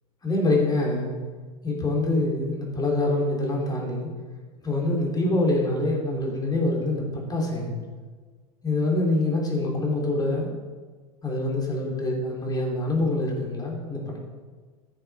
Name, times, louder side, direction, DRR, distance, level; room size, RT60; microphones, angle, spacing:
voice 1, 0.2-1.1 1.6-4.1 4.6-7.8 8.6-10.5 11.2-14.2, left 2 dB, 20° left, -1 dB, 3.0 m, -25 dB
11.0 x 6.7 x 4.7 m, 1.4 s
hypercardioid pair, 85°, 19 cm